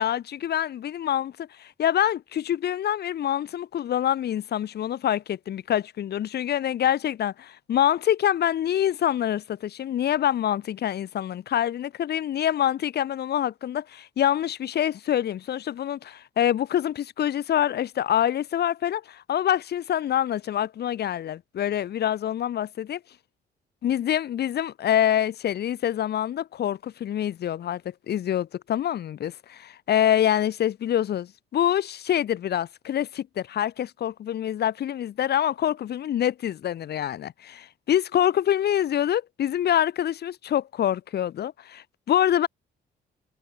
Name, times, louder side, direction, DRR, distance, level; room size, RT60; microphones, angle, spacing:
voice 1, 0.0-23.0 23.8-27.8 28.1-42.5, left 10 dB, 65° left, 1.4 m, -26 dB
cardioid pair, 110°, 18 cm